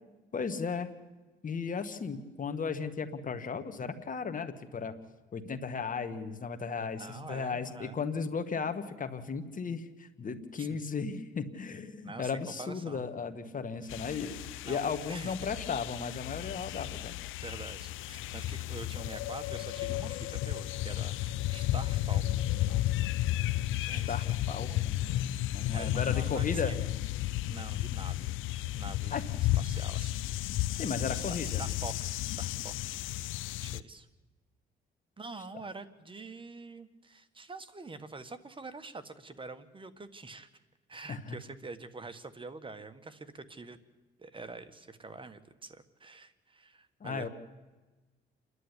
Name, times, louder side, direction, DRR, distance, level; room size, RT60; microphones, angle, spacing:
voice 1, 0.3-0.9 1.4-4.9 5.3-17.2 23.9-24.9 25.5-26.7 29.1-29.2 30.7-31.6 41.1-41.4 47.0-47.3, left 5 dB, 40° left, 9 dB, 1.9 m, -35 dB
voice 2, 7.0-8.0 10.6-10.7 12.0-13.0 14.6-14.8 15.1-15.4 17.4-22.8 23.8-24.8 25.7-26.8 27.5-28.4 28.8-29.3 29.6-30.2 31.1-33.0 33.6-34.1 35.2-40.5 40.9-43.8 44.2-47.3, right 3 dB, 25° right, 11 dB, 1.6 m, -46 dB
sound 1, 13.9-33.8, left 14 dB, 90° left, 0.6 m, -33 dB
28.5 x 11.5 x 9.9 m, 1.2 s
cardioid pair, 90°, 20 cm